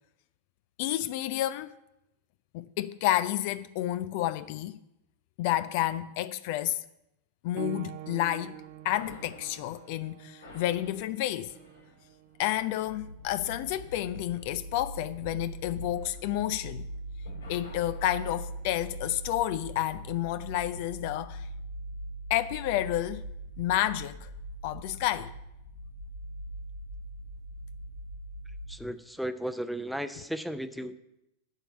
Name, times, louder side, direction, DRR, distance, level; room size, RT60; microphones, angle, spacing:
voice 1, 0.8-1.7 2.5-4.8 5.4-6.8 7.4-8.6 8.8-11.5 12.4-16.9 17.5-21.5 22.3-23.2 23.6-24.3 24.6-25.3, left 13 dB, 50° left, 0.4 m, -30 dB
sound 1, 7.6-17.8 18.7-18.9 19.6-19.7, right 15 dB, 50° right, 0.6 m, -48 dB
sound 2, 8.9-16.9 17.2-19.5, left 1 dB, 75° left, 2.3 m, -54 dB
sound 3, 12.5-28.9, right 1 dB, 90° right, 1.0 m, -41 dB
voice 2, 28.5-31.0, equal, ahead, 0.6 m, -35 dB
11.0 x 4.6 x 8.1 m
figure-of-eight pair, 90°, 0 cm